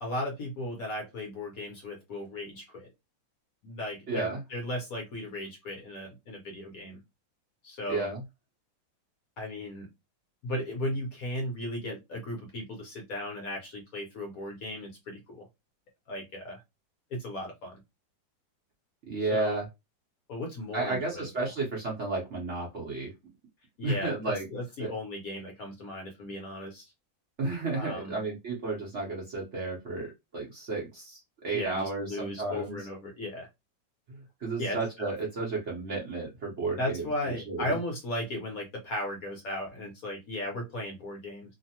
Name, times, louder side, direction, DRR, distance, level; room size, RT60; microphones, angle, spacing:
voice 1, 0.0-2.9 3.6-7.0 7.6-8.1 9.4-9.9 10.4-15.5 16.1-16.6 17.1-17.7 19.3-19.6 20.3-21.3 23.8-24.2 24.5-26.9 27.8-28.2 31.5-33.5 34.6-34.8 36.8-41.5, left 1 dB, 60° left, 1 dB, 1.0 m, -36 dB
voice 2, 4.1-4.4 7.9-8.2 19.1-19.6 20.7-23.1 23.8-24.5 24.8-24.9 27.4-31.2 31.4-32.8 34.4-37.7, right 3 dB, 50° right, -3 dB, 0.9 m, -32 dB
3.1 x 2.0 x 2.8 m, 0.22 s
omnidirectional pair, 2.0 m